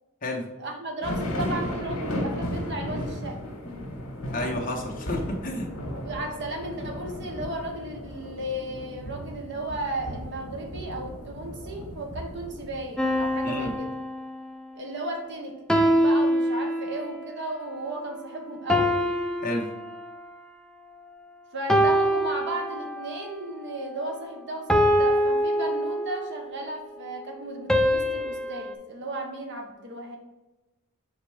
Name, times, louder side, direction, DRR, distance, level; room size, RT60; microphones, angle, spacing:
voice 1, 0.6-3.4 5.9-13.9 14.7-19.0 21.5-30.2, right 1 dB, 55° right, 2 dB, 1.1 m, -35 dB
sound 1, 1.0-13.8, left 1 dB, 70° left, 1.7 m, -35 dB
voice 2, 4.3-5.7 13.4-13.7 19.4-19.7, left 1 dB, 40° left, 0 dB, 1.2 m, -30 dB
sound 2, 13.0-14.6 15.7-17.2 18.7-20.4 21.7-23.2 24.7-26.4 27.7-28.7, equal, 5° left, 0.4 m, -24 dB
5.0 x 4.5 x 4.8 m, 1.1 s
head